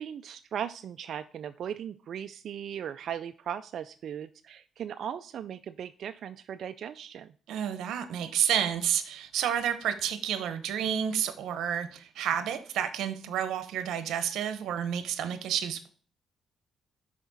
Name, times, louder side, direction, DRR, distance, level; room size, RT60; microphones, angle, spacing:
voice 1, 0.0-7.3, right 9 dB, 65° right, 0.3 m, -38 dB
voice 2, 7.5-15.9, right 9 dB, 80° right, 0.8 m, -30 dB
5.9 x 5.1 x 4.0 m
cardioid pair, 90°, 0 cm